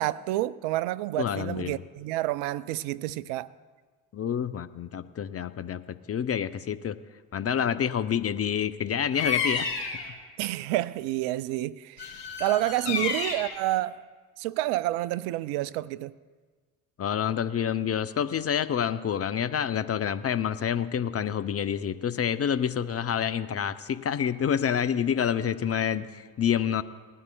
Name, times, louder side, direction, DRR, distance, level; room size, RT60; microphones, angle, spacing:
voice 1, 0.0-3.5 10.4-12.1 12.4-14.0 14.4-16.1, right 16 dB, 65° right, 0.5 m, -29 dB
voice 2, 1.2-1.8 4.1-5.8 6.1-7.0 7.3-9.7 12.9-13.0 17.0-26.8, left 8 dB, 30° left, 0.6 m, -28 dB
Bird vocalization bird call bird song, 9.1-10.1 12.0-13.6, left 5 dB, 65° left, 3.2 m, -31 dB
20.0 x 12.5 x 2.3 m
hypercardioid pair, 55°, 49 cm